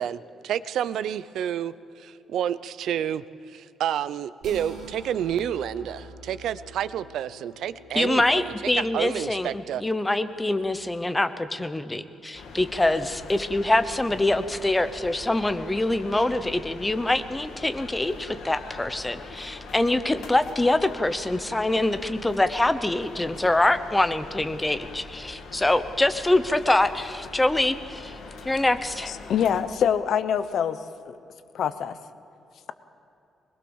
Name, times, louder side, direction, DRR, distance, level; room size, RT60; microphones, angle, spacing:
voice 1, 0.0-9.8, right 10 dB, 75° right, 17 dB, 0.6 m, -30 dB
sound 1, 4.4-10.9, right 1 dB, 50° right, 4.5 m, -47 dB
voice 2, 7.9-28.2 28.4-29.1, left 2 dB, 10° left, 10 dB, 0.9 m, -24 dB
sound 2, 12.3-29.6, left 3 dB, 80° left, 2.8 m, -42 dB
voice 3, 29.1-30.8 31.1-31.2 31.5-32.0, left 8 dB, 55° left, 13 dB, 0.9 m, -25 dB
22.0 x 20.5 x 7.2 m, 2.9 s
cardioid pair, 170°, 0 cm